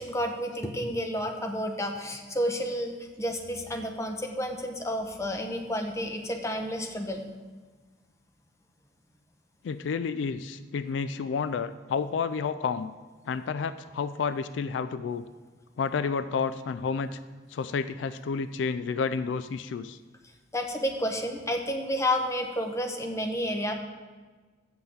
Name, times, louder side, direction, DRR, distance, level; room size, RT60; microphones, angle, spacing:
voice 1, 0.0-7.2 20.5-23.7, equal, 15° left, 4 dB, 0.9 m, -30 dB
voice 2, 9.6-12.9 13.3-15.3 15.8-17.2 17.5-20.0, left 5 dB, 75° left, 13 dB, 0.3 m, -30 dB
7.9 x 5.6 x 7.1 m, 1.4 s
head